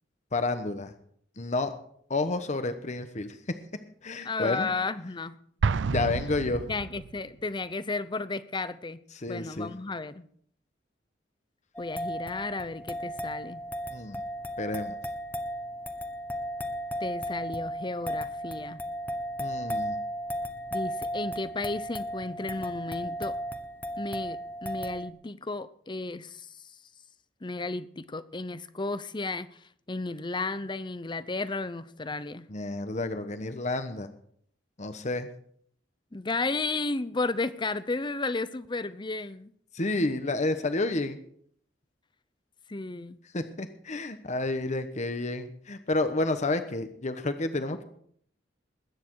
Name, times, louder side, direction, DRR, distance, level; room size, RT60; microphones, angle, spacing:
voice 1, 0.3-0.9 1.4-1.7 2.1-3.6 4.0-4.7 5.9-6.7 9.1-9.7 13.9-14.2 14.6-15.0 19.4-20.0 32.5-34.1 34.8-35.3 39.7-41.2 43.3-47.8, left 2 dB, 40° left, 9 dB, 1.1 m, -30 dB
voice 2, 4.2-5.4 6.7-9.0 9.3-10.3 11.8-13.6 17.0-18.8 20.7-23.3 24.0-26.5 27.4-29.5 29.9-32.5 36.1-39.5 42.7-43.2, left 3 dB, 25° left, 15 dB, 0.7 m, -33 dB
Explosion, 5.6-7.3, right 5 dB, 80° right, 0.5 m, -29 dB
sound 1, 11.7-25.1, equal, 10° left, 1.2 m, -35 dB
21.0 x 9.5 x 4.7 m, 0.62 s
head